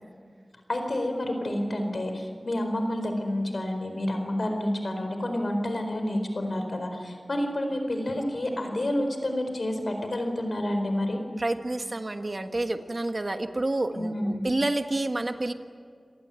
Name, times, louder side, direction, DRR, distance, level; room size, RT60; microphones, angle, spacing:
voice 1, 0.7-11.2 13.9-14.4, left 1 dB, 65° left, 5 dB, 4.5 m, -29 dB
voice 2, 11.4-15.5, right 2 dB, 45° right, 7 dB, 1.4 m, -29 dB
28.0 x 18.5 x 9.1 m, 2.1 s
wide cardioid pair, 75°, 0 cm